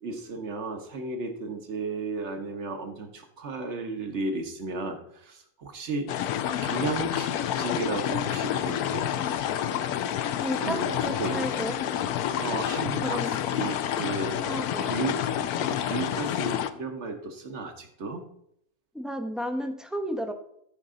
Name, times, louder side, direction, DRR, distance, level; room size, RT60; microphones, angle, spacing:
voice 1, 0.0-6.2 6.6-9.1 10.6-11.5 12.4-14.4 14.8-15.3 15.6-18.2, right 3 dB, 50° right, 6 dB, 1.5 m, -34 dB
sound 1, 6.1-16.7, left 10 dB, 90° left, 1.1 m, -29 dB
voice 2, 10.4-11.8 13.0-13.4 14.4-15.1 18.9-20.3, equal, ahead, 5 dB, 0.5 m, -33 dB
13.5 x 5.4 x 3.8 m, 0.72 s
omnidirectional pair, 1.6 m